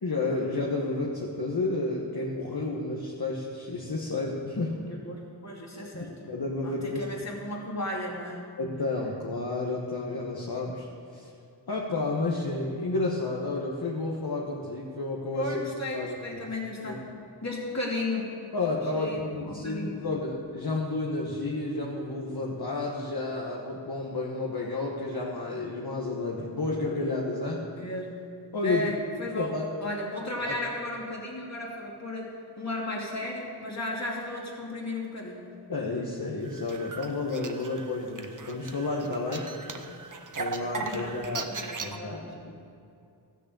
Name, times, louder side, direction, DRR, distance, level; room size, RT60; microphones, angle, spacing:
voice 1, 0.0-4.8 5.9-7.0 8.6-11.3 11.7-15.6 15.9-16.4 16.8-17.0 18.5-27.6 28.5-28.9 29.3-29.6 30.4-30.5 35.7-39.5 40.4-41.5 41.8-42.5, left 3 dB, 55° left, -3 dB, 1.4 m, -31 dB
voice 2, 4.9-6.2 6.6-8.5 15.3-17.0 17.4-18.3 18.9-19.2 19.5-20.0 27.8-28.2 28.6-29.5 29.8-32.3 32.6-35.6 39.7-39.9 40.6-42.2, left 1 dB, 40° left, -3 dB, 2.6 m, -35 dB
sound 1, 36.5-42.0, right 4 dB, 45° right, 0.9 m, -38 dB
14.0 x 6.5 x 6.9 m, 2.5 s
wide cardioid pair, 55°, 42 cm